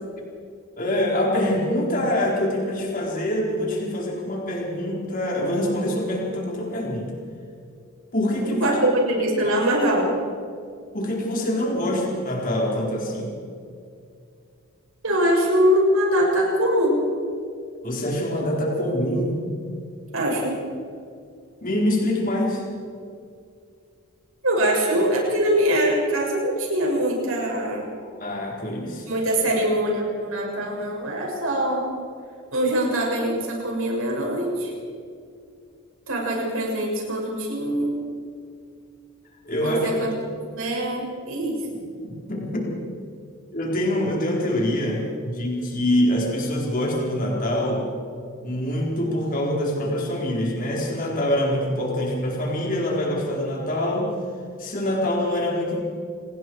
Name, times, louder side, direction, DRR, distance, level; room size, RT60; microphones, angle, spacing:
voice 1, 0.8-7.1 8.1-8.8 9.4-9.5 10.9-13.3 17.8-19.4 21.6-22.6 28.0-29.1 39.4-39.9 42.0-42.7 43.5-47.9 48.4-54.1 54.6-55.8, left 1 dB, 40° left, -2 dB, 4.3 m, -25 dB
voice 2, 8.6-10.1 15.0-17.0 20.1-20.6 24.4-27.9 29.0-31.9 32.5-34.7 36.1-38.0 39.6-40.1 40.5-41.6, right 1 dB, 70° right, -1 dB, 6.5 m, -23 dB
28.0 x 19.5 x 4.8 m, 2.3 s
head